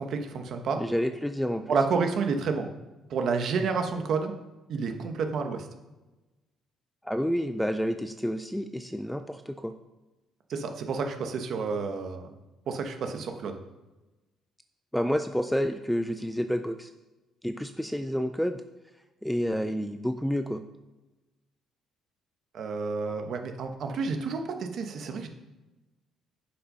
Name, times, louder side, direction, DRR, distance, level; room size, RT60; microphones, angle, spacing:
voice 1, 0.0-0.8 1.7-2.7 3.1-4.3 4.7-5.7 10.5-12.3 12.7-13.6 22.5-25.3, right 5 dB, 45° right, 5 dB, 1.0 m, -30 dB
voice 2, 0.8-1.7 7.0-9.7 14.9-16.9 17.4-18.6 19.2-20.6, equal, ahead, 8 dB, 0.3 m, -29 dB
10.0 x 5.5 x 5.4 m, 1.1 s
cardioid pair, 180°, 0 cm